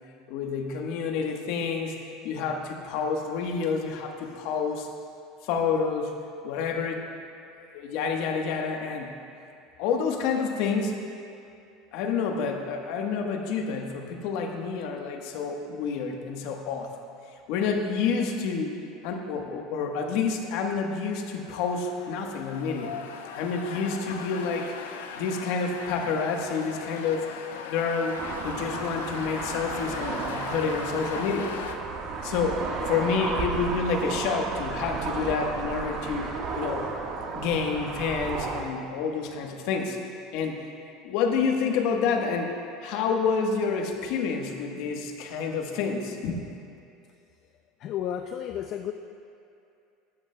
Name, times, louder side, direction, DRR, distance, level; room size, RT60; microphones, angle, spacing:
voice 1, 0.3-1.9 2.2-4.9 5.4-6.1 6.4-7.0 7.7-9.1 9.8-11.1 11.9-16.9 17.5-22.9 23.3-24.7 25.1-27.3 27.6-28.2 28.4-31.5 32.2-36.9 37.3-40.0 40.3-40.6 41.0-42.5 42.8-46.3, left 5 dB, 65° left, 3 dB, 1.2 m, -28 dB
sound 1, 21.0-31.8, left 6 dB, 90° left, 0.7 m, -39 dB
sound 2, 28.2-38.6, right 4 dB, 50° right, 1.4 m, -33 dB
voice 2, 47.8-48.9, left 10 dB, 50° left, 6 dB, 0.4 m, -32 dB
14.5 x 11.5 x 2.2 m, 2.6 s
supercardioid pair, 100°, 0 cm